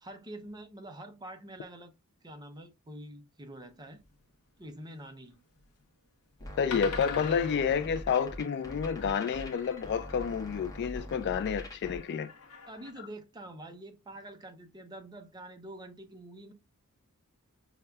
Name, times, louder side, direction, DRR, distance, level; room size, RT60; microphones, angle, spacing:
voice 1, 0.0-1.9 2.2-4.0 4.6-5.4 12.7-16.5, right 1 dB, 20° right, 0.6 m, -46 dB
sound 1, 4.0-4.1 5.6-5.8 6.3-6.4 6.7-11.1 11.8-12.9, left 4 dB, 70° left, 0.9 m, -45 dB
sound 2, 6.4-12.0, left 1 dB, 15° left, 0.8 m, -43 dB
voice 2, 6.6-12.3, left 7 dB, 50° left, 0.3 m, -29 dB
6.6 x 2.2 x 2.2 m
head